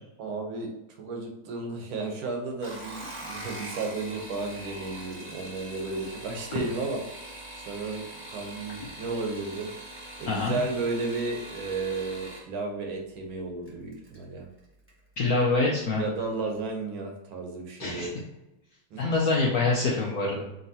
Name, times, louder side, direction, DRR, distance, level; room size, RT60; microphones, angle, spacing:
voice 1, 0.2-0.7 1.0-7.0 7.7-9.7 10.2-14.5 15.9-18.2 18.9-19.0, right 3 dB, 75° right, 2 dB, 1.6 m, -33 dB
sound 1, 2.5-12.5 13.7-14.2 14.6-15.0 15.3-15.4, right 1 dB, 10° right, 0.7 m, -42 dB
voice 2, 10.3-10.6 15.2-16.0 17.8-18.1 19.0-20.4, left 3 dB, 75° left, -3 dB, 0.8 m, -25 dB
5.3 x 2.9 x 2.7 m, 0.90 s
omnidirectional pair, 2.3 m